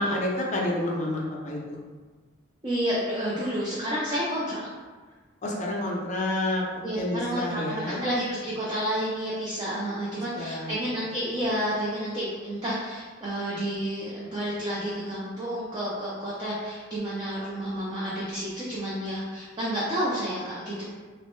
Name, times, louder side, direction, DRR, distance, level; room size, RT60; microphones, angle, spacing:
voice 1, 0.0-1.8 5.4-6.6 6.9-8.1 10.4-10.7, left 1 dB, 35° left, -2 dB, 0.4 m, -29 dB
voice 2, 2.6-4.7 6.8-20.8, equal, 25° right, -8 dB, 0.4 m, -30 dB
3.0 x 2.1 x 3.0 m, 1.4 s
head